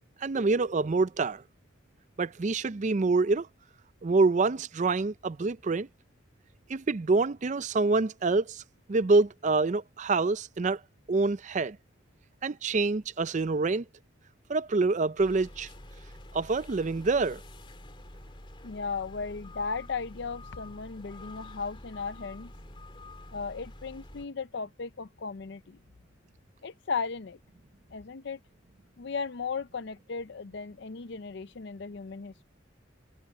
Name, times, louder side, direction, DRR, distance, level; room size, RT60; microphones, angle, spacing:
voice 1, 0.2-1.4 2.2-3.5 4.0-5.9 6.7-8.6 8.9-10.8 11.1-11.8 12.4-13.8 14.5-15.7 16.3-17.4, right 3 dB, 35° right, 0.4 m, -26 dB
sound 1, 15.2-24.3, left 1 dB, 25° left, 3.1 m, -48 dB
voice 2, 18.6-22.5 23.3-25.8 26.6-27.4 27.9-28.4 29.0-32.4, left 5 dB, 55° left, 0.5 m, -36 dB
head